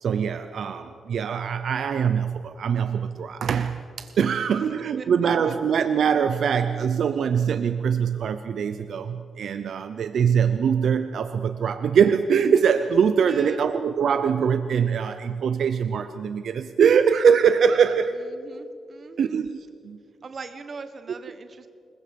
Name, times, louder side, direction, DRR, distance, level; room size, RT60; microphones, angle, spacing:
voice 1, 0.0-18.2 19.2-20.0, right 7 dB, 60° right, 10 dB, 0.7 m, -23 dB
voice 2, 13.2-13.7 18.1-19.4 20.2-21.7, right 4 dB, 35° right, 9 dB, 1.4 m, -40 dB
26.5 x 21.5 x 5.4 m, 2.3 s
wide cardioid pair, 170°, 0 cm